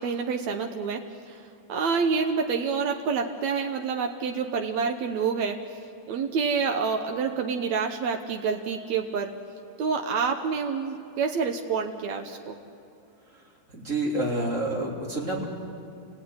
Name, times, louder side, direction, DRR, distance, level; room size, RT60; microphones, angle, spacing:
voice 1, 0.0-1.4 1.7-5.6 6.1-9.3 9.8-12.6, right 5 dB, 85° right, 3 dB, 1.6 m, -28 dB
voice 2, 13.7-15.4, right 1 dB, 20° right, -3 dB, 3.4 m, -28 dB
29.0 x 17.0 x 9.6 m, 2.7 s
omnidirectional pair, 4.8 m